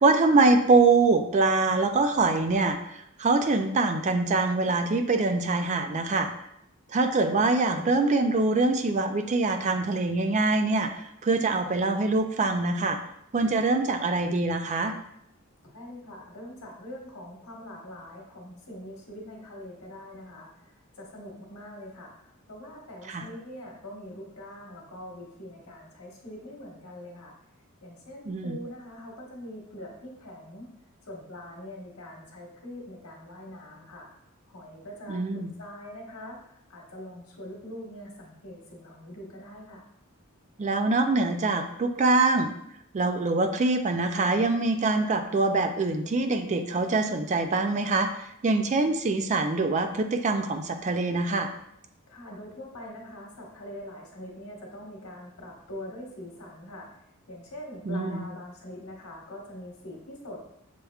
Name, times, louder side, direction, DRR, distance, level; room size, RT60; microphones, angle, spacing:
voice 1, 0.0-6.3 6.9-10.9 11.2-13.0 13.3-14.9 23.1-23.2 28.3-28.5 35.1-35.5 40.6-42.5 42.9-48.1 48.4-51.5 57.9-58.2, right 3 dB, 35° right, 7 dB, 0.3 m, -24 dB
voice 2, 15.6-27.3 27.8-30.7 31.0-34.1 34.5-39.9 52.1-56.9 57.3-60.4, left 1 dB, 75° left, -1 dB, 1.3 m, -43 dB
6.5 x 3.5 x 2.3 m, 0.75 s
head